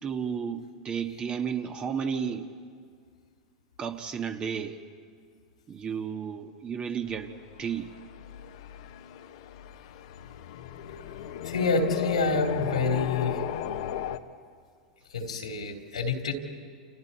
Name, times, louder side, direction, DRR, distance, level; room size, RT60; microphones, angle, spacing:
voice 1, 0.0-2.5 3.8-4.8 5.7-7.3 7.6-7.9, right 7 dB, 30° right, 6 dB, 1.6 m, -32 dB
sound 1, 7.1-14.2, left 10 dB, 65° left, 1.1 m, -36 dB
voice 2, 11.4-13.4 15.1-16.3, left 4 dB, 90° left, 3 dB, 3.1 m, -27 dB
29.0 x 29.0 x 4.2 m, 2.1 s
hypercardioid pair, 100°, 3 cm